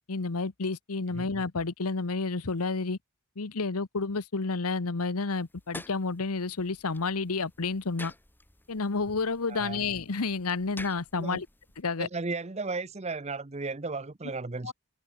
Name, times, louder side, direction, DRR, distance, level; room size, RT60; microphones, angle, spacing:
voice 1, 0.1-3.0 3.4-8.1 8.7-11.5 11.8-12.1 14.6-14.7, left 4 dB, 80° left, 1.0 m, -30 dB
sound 1, 5.4-11.8, left 2 dB, 10° left, 6.8 m, -49 dB
voice 2, 9.5-9.8 11.2-11.4 12.0-14.7, right 3 dB, 30° right, 0.7 m, -35 dB
head